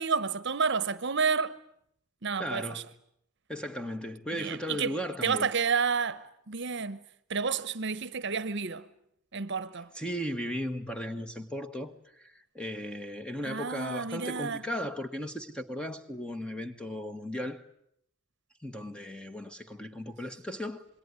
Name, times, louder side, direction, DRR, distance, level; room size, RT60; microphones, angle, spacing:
voice 1, 0.0-1.5 2.2-2.8 4.4-5.0 5.2-7.0 7.3-8.9 9.3-9.9 13.4-14.6, right 5 dB, 55° right, 1.0 m, -30 dB
voice 2, 2.4-2.9 3.5-5.5 9.9-17.6 18.6-20.9, equal, 5° left, 1.6 m, -36 dB
27.0 x 22.0 x 9.8 m
head